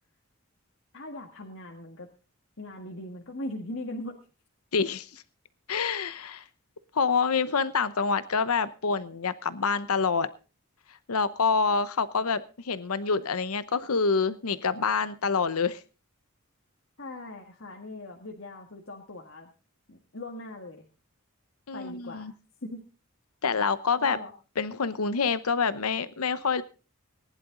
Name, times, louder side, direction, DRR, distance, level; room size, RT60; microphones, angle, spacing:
voice 1, 0.9-2.1 2.6-4.2 17.0-19.5 19.9-20.8 21.7-22.3 22.6-22.9 24.0-24.3, left 1 dB, 60° left, 2 dB, 1.7 m, -40 dB
voice 2, 4.7-5.1 5.7-6.4 6.9-10.3 11.1-15.8 21.7-22.3 23.4-24.2 24.6-26.6, left 5 dB, 85° left, 15 dB, 0.8 m, -27 dB
19.5 x 11.0 x 3.8 m, 0.34 s
head